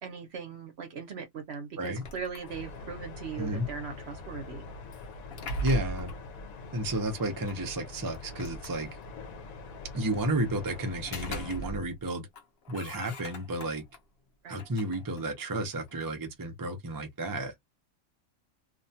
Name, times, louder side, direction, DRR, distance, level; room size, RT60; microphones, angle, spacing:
voice 1, 0.0-4.7 14.4-14.6, right 6 dB, 55° right, 0.9 m, -39 dB
sound 1, 1.8-3.0 4.9-6.3 7.5-7.6 8.1-9.2 10.8-12.0 12.3-14.0 14.5-16.1, right 2 dB, 55° left, 0.8 m, -40 dB
sound 2, 2.5-11.6, left 3 dB, 85° left, 1.1 m, -44 dB
voice 2, 5.6-6.1 6.7-8.9 9.9-12.3 12.7-13.8 14.5-17.5, right 1 dB, 30° right, 0.4 m, -32 dB
2.6 x 2.2 x 2.6 m
omnidirectional pair, 1.4 m